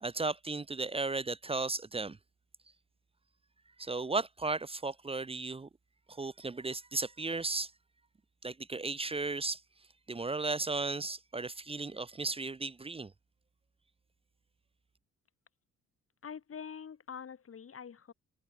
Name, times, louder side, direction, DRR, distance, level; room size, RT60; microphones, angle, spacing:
voice 1, 0.0-2.2 3.8-5.7 6.1-7.7 8.4-9.6 10.1-13.1, right 3 dB, 20° right, 0.8 m, -35 dB
voice 2, 16.2-18.1, left 7 dB, 45° left, 7.6 m, -45 dB
cardioid pair, 90°, 30 cm